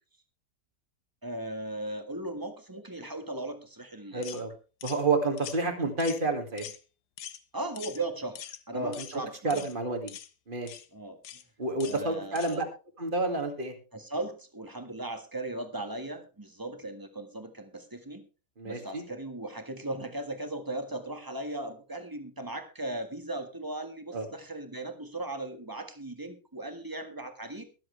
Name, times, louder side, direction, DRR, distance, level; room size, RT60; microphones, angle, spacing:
voice 1, 1.2-4.4 7.5-9.7 10.9-11.2 11.8-12.7 13.9-18.2 18.6-27.6, right 2 dB, 10° right, 7 dB, 1.4 m, -37 dB
voice 2, 4.1-4.5 4.8-6.6 8.7-10.1 10.5-10.7 11.6-12.6 13.0-13.7 18.6-19.0 24.1-24.3, right 3 dB, 30° right, 5 dB, 2.2 m, -29 dB
sound 1, 4.2-4.4 4.8-5.0 5.4-5.6 6.0-6.3 6.6-6.8 7.2-7.4 7.7-8.0 8.3-8.6 8.9-9.2 9.5-9.7 10.1-10.3 10.7-10.9 11.2-11.4 11.8-12.0 12.4-12.6, left 10 dB, 70° left, 1.4 m, -43 dB
23.0 x 7.7 x 3.3 m, 0.33 s
omnidirectional pair, 1.9 m